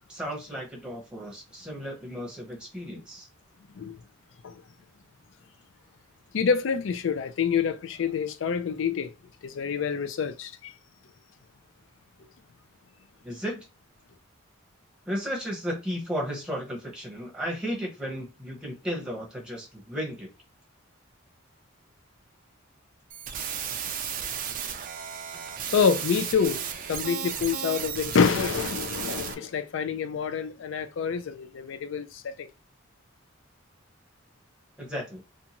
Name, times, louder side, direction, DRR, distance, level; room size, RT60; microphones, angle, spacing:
voice 1, 0.1-3.3 13.2-13.7 15.1-20.3 34.8-35.2, equal, 5° right, 0.8 m, -34 dB
voice 2, 6.3-9.1 9.4-10.7 25.7-32.5, left 6 dB, 60° left, 0.4 m, -27 dB
sound 1, 23.1-29.3, right 8 dB, 40° right, 0.4 m, -34 dB
2.6 x 2.3 x 2.8 m
head